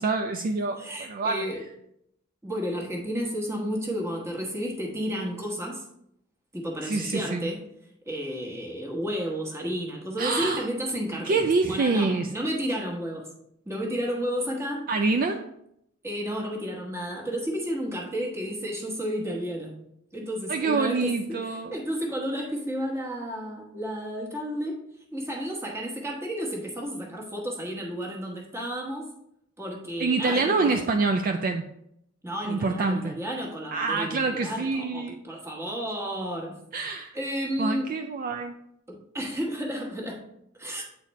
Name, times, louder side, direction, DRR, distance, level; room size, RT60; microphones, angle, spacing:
voice 1, 0.0-1.5 6.8-7.5 10.2-10.7 11.2-12.3 14.9-15.4 20.5-21.8 30.0-31.7 32.5-33.2 33.7-35.2 36.7-37.2 37.6-38.5, right 3 dB, 45° right, 5 dB, 0.3 m, -26 dB
voice 2, 0.8-1.6 2.4-5.8 6.5-7.6 8.1-13.3 13.6-14.9 16.0-19.7 20.1-21.4 21.7-24.8 25.1-29.1 29.6-30.8 32.2-36.6 37.1-37.9 38.9-40.2 40.6-40.8, equal, 15° right, -1 dB, 1.1 m, -32 dB
8.1 x 4.1 x 3.1 m, 0.77 s
head